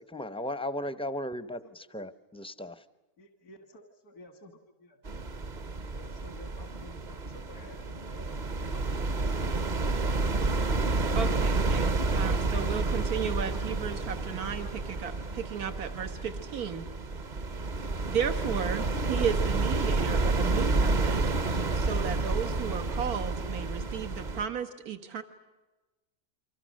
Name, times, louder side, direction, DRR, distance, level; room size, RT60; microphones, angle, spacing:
voice 1, 0.0-1.6 1.9-2.8, left 1 dB, 5° left, 13 dB, 0.6 m, -35 dB
voice 2, 1.6-2.0 3.2-5.0 5.9-10.4, left 2 dB, 90° left, 6 dB, 2.2 m, -53 dB
sound 1, 5.0-24.4, right 3 dB, 35° right, 0.9 m, -30 dB
voice 3, 11.2-16.9 18.1-21.2 21.7-25.2, right 7 dB, 80° right, 8 dB, 2.0 m, -34 dB
29.0 x 25.0 x 6.5 m, 1.2 s
omnidirectional pair, 1.5 m